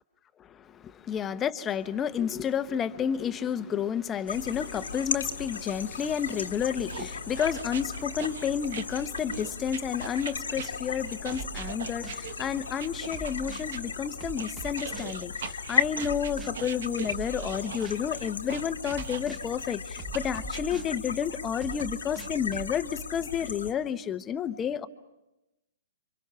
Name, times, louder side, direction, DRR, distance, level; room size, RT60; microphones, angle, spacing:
voice 1, 1.0-24.9, left 8 dB, 20° left, 1.0 m, -31 dB
sound 1, 4.3-23.7, left 5 dB, 90° left, 1.7 m, -36 dB
sound 2, 6.9-13.8 14.4-19.5 20.1-20.6, right 7 dB, 65° right, 1.2 m, -41 dB
sound 3, 11.3-12.3 13.1-13.7 14.2-15.2 16.0-16.5 17.1-18.1 18.9-19.5 20.0-21.0 21.6-22.7, right 7 dB, 20° right, 1.1 m, -41 dB
29.0 x 24.5 x 5.8 m
hypercardioid pair, 130°, 0 cm